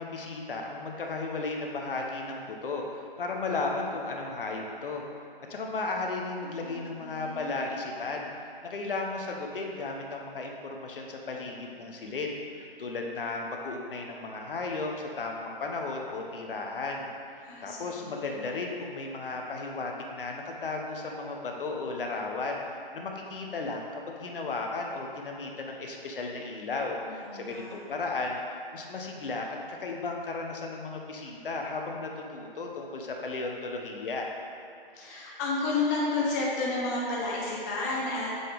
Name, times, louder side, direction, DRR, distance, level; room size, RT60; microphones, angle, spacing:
voice 1, 0.0-5.0 5.5-8.3 8.6-34.3, left 3 dB, 65° left, 1 dB, 0.9 m, -35 dB
voice 2, 6.4-7.5 17.4-18.5 27.1-27.8 34.9-38.3, left 3 dB, 20° left, -4 dB, 0.6 m, -32 dB
7.4 x 3.9 x 3.4 m, 2.5 s
hypercardioid pair, 145°, 29 cm